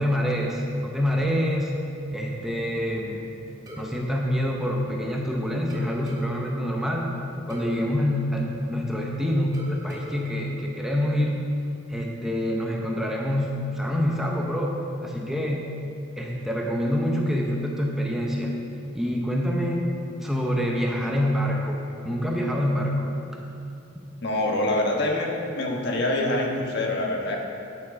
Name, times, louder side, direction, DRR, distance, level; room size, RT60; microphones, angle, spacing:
voice 1, 0.0-1.7 2.1-3.4 3.8-7.1 7.5-11.4 11.9-15.7 16.2-18.5 18.9-19.9 20.2-23.2, equal, ahead, -2 dB, 0.7 m, -26 dB
sound 1, 3.7-5.2 5.7-9.1 9.5-11.5, right 1 dB, 20° right, 1.5 m, -43 dB
voice 2, 24.2-27.4, left 1 dB, 55° left, 0 dB, 1.3 m, -25 dB
9.6 x 7.3 x 5.2 m, 2.6 s
head